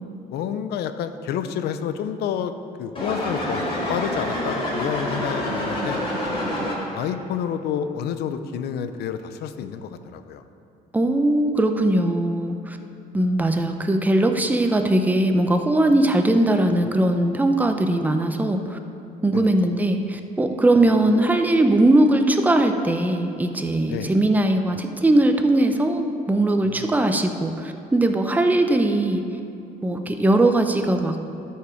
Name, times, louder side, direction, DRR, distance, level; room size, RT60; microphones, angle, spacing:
voice 1, 0.3-2.5 2.8-6.0 6.9-10.4 19.3-19.6 23.9-24.1 26.6-26.9, left 8 dB, 75° left, 10 dB, 0.6 m, -29 dB
sound 1, 3.0-7.1, left 1 dB, 30° left, 2.5 m, -27 dB
voice 2, 10.9-12.8 13.1-18.8 19.2-29.2 29.8-31.2, right 1 dB, 10° right, 6 dB, 0.7 m, -20 dB
12.5 x 5.7 x 5.0 m, 2.8 s
cardioid pair, 110°, 17 cm